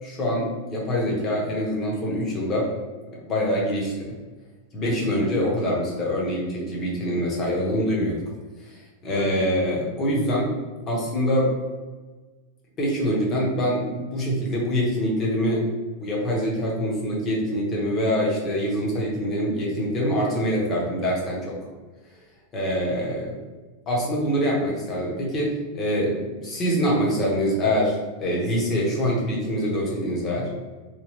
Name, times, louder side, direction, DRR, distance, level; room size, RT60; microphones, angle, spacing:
voice 1, 0.0-2.7 3.1-4.0 4.7-8.2 8.6-8.7 9.0-10.5 10.9-11.5 12.8-15.6 16.0-21.5 22.5-23.4 23.9-30.5, equal, 25° left, -3 dB, 0.8 m, -25 dB
3.0 x 2.2 x 3.0 m, 1.3 s
supercardioid pair, 165°, 0 cm